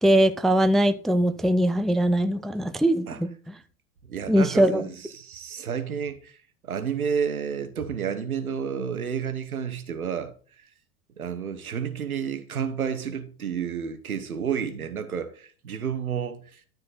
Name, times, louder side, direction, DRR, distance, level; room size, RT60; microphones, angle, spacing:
voice 1, 0.0-3.3 4.3-4.9, right 1 dB, ahead, 0.4 m, -21 dB
voice 2, 4.1-6.4 6.6-10.3 11.2-16.6, right 7 dB, 85° right, 1.3 m, -30 dB
13.0 x 4.4 x 4.1 m
figure-of-eight pair, 85°, 42 cm